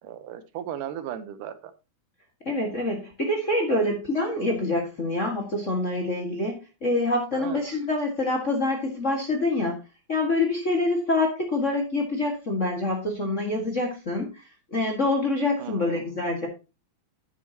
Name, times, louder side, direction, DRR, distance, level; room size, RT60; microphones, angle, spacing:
voice 1, 0.0-1.7 7.3-7.6 15.6-16.1, right 10 dB, 85° right, 12 dB, 2.5 m, -36 dB
voice 2, 2.4-9.8 10.1-14.4 14.7-16.5, left 2 dB, 30° left, 0 dB, 1.5 m, -26 dB
10.5 x 8.5 x 2.8 m, 0.29 s
omnidirectional pair, 3.6 m